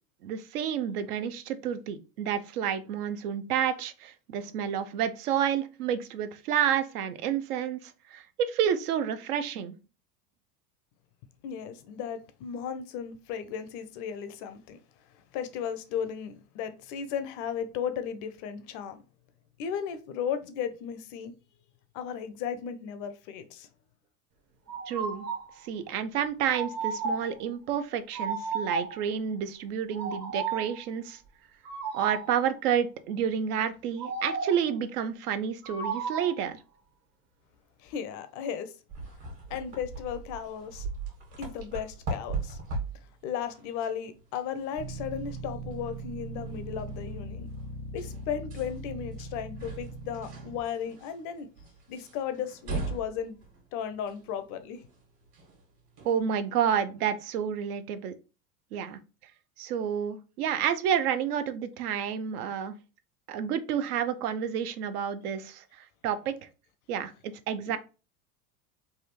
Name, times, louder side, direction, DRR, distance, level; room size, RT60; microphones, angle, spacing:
voice 1, 0.2-9.7 24.9-25.3 25.6-31.2 31.9-36.6 56.0-58.1 58.7-59.0 59.6-62.7 63.3-66.3 66.9-67.8, right 8 dB, 70° right, 0.6 m, -30 dB
voice 2, 11.4-14.8 15.3-19.0 19.6-21.3 21.9-23.7 37.8-38.7 39.5-40.9 41.4-42.6 43.2-47.5 47.9-51.5 51.9-53.3 53.7-54.8 67.6-67.8, left 8 dB, 40° left, 0.4 m, -35 dB
sound 1, 24.7-25.5 26.5-27.4 28.1-29.0 29.9-30.8 31.6-32.4 34.0-34.7 35.6-36.4, right 5 dB, 30° right, 0.8 m, -33 dB
sound 2, 38.9-56.2, right 3 dB, 50° right, 1.5 m, -41 dB
sound 3, 44.8-50.6, right 1 dB, 85° right, 1.4 m, -40 dB
3.3 x 2.3 x 2.8 m
hypercardioid pair, 95°, 47 cm